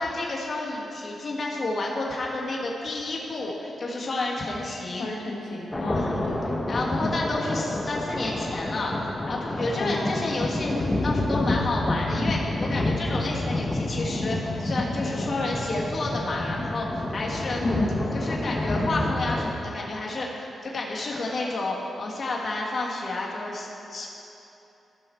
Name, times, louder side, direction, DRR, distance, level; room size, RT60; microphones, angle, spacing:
voice 1, 0.0-5.1 5.9-6.3 6.7-8.9 9.3-17.6 18.1-24.1, left 2 dB, 40° left, -4 dB, 1.6 m, -30 dB
voice 2, 5.0-6.4 9.8-10.0 17.6-18.0, left 2 dB, 75° left, -3 dB, 1.3 m, -31 dB
sound 1, 5.7-19.5, left 1 dB, 15° left, 0.7 m, -28 dB
14.5 x 5.8 x 4.5 m, 3.0 s
cardioid pair, 110°, 0 cm